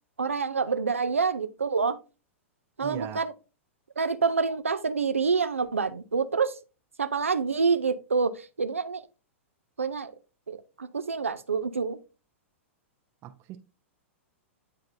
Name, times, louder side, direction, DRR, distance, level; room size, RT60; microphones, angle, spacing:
voice 1, 0.2-2.0 2.8-3.3 4.0-6.6 7.0-9.0 9.8-10.1 10.5-12.0, right 5 dB, 85° right, 0.5 m, -27 dB
voice 2, 2.8-3.2 13.2-13.6, right 11 dB, 35° right, 0.6 m, -39 dB
9.7 x 3.8 x 2.6 m
figure-of-eight pair, 105°, 7 cm